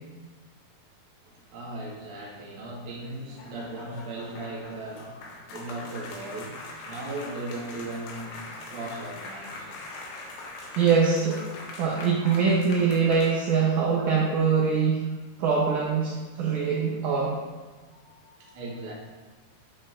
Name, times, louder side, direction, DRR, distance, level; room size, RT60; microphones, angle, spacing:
voice 1, 1.2-10.2 10.5-10.8 11.3-11.4 12.2-12.5 17.9-18.9, right 2 dB, 55° right, -5 dB, 1.6 m, -38 dB
sound 1, 2.8-13.8, left 2 dB, 80° left, 2.9 m, -42 dB
voice 2, 10.8-11.4 11.8-15.0 15.4-17.4, right 5 dB, 80° right, -4 dB, 1.8 m, -23 dB
10.0 x 4.3 x 2.5 m, 1.3 s
omnidirectional pair, 4.6 m